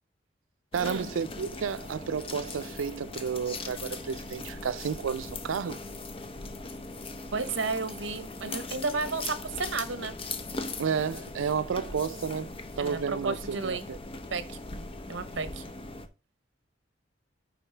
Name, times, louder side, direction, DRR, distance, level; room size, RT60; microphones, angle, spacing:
sound 1, 0.7-16.1, left 3 dB, 30° left, 0.7 m, -40 dB
voice 1, 0.7-5.8 10.8-14.0, right 6 dB, 85° right, 0.4 m, -32 dB
voice 2, 7.3-10.2 12.8-13.9 14.3-14.6 15.1-15.6, right 4 dB, 65° right, 0.9 m, -32 dB
9.2 x 4.0 x 3.2 m
head